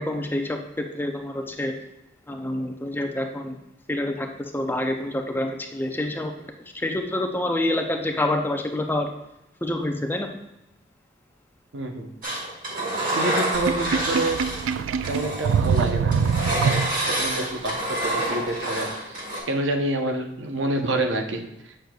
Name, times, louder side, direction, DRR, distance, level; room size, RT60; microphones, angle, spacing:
voice 1, 0.0-1.7 2.3-3.6 3.9-6.4 6.7-9.1 9.6-10.3, left 1 dB, 10° left, 3 dB, 0.5 m, -27 dB
voice 2, 11.7-12.1 13.1-14.5 15.0-19.0 19.5-21.7, right 1 dB, 70° right, 4 dB, 0.7 m, -28 dB
Engine, 12.2-14.7 15.0-19.4, right 1 dB, 45° right, 2.0 m, -28 dB
Sink (filling or washing), 13.5-17.3, right 6 dB, 90° right, 0.3 m, -24 dB
7.7 x 6.6 x 2.3 m, 0.88 s
head